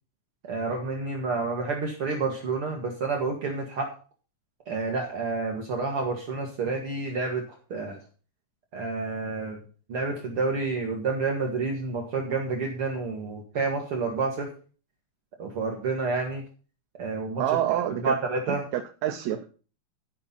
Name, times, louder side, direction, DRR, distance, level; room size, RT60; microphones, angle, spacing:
voice 1, 0.5-3.9 4.7-7.4 7.7-8.0 8.7-9.6 9.9-14.5 15.4-16.4 17.0-17.4 18.0-18.7, right 4 dB, 55° right, 1 dB, 2.2 m, -29 dB
voice 2, 17.4-18.1 18.7-19.5, right 12 dB, 75° right, 8 dB, 1.9 m, -27 dB
12.5 x 6.0 x 5.4 m, 0.38 s
omnidirectional pair, 3.4 m